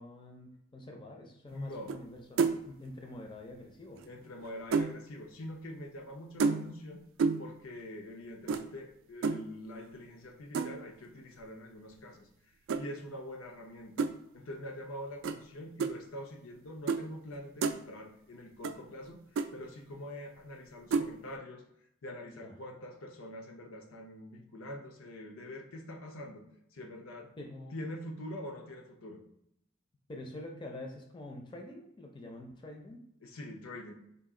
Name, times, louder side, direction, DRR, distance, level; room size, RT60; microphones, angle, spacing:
voice 1, 0.0-4.0 22.2-22.6 27.4-27.7 30.1-33.0, left 1 dB, 25° left, 1 dB, 0.5 m, -46 dB
voice 2, 1.5-1.9 4.0-7.0 7.4-12.3 12.8-13.9 14.3-19.2 19.5-21.6 22.0-26.4 26.7-27.3 27.7-29.2 33.2-33.9, left 1 dB, 80° left, 3 dB, 0.7 m, -44 dB
sound 1, 1.9-2.1 2.4-2.7 4.0-5.0 6.4-6.9 7.2-7.5 8.5-8.6 9.2-9.4 10.5-10.9 12.7-12.8 14.0-14.1 15.2-15.4 15.8-15.9 16.9-17.0 17.3-17.8 18.6-18.7 19.0-19.1 19.4-19.5 20.9-21.1, right 5 dB, 65° right, 0.3 m, -30 dB
4.0 x 2.4 x 3.6 m, 0.76 s
head